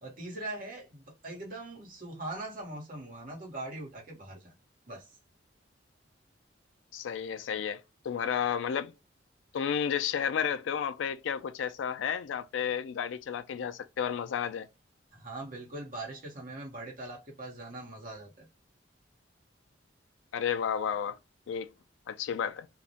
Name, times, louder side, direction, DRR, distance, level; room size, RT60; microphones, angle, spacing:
voice 1, 0.0-4.5 4.9-5.1 15.1-18.5, right 2 dB, 45° right, 1.0 m, -41 dB
voice 2, 6.9-8.9 9.5-14.7 20.3-21.2 21.5-21.7 22.1-22.7, left 8 dB, 80° left, 0.3 m, -32 dB
2.3 x 2.1 x 2.7 m
head